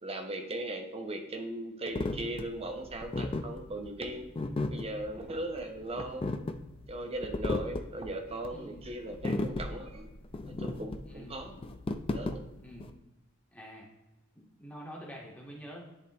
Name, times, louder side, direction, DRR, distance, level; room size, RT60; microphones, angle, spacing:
voice 1, 0.0-4.3 4.7-6.3 6.9-10.1 10.4-11.6 12.1-12.4, right 1 dB, 30° right, 5 dB, 0.8 m, -38 dB
sound 1, 1.9-12.9, left 2 dB, 25° left, 0.4 m, -35 dB
voice 2, 8.5-8.8 11.0-11.4 12.6-12.9 13.5-13.8 14.3-15.8, equal, 5° left, -3 dB, 1.3 m, -47 dB
10.5 x 3.5 x 2.9 m, 1.0 s
head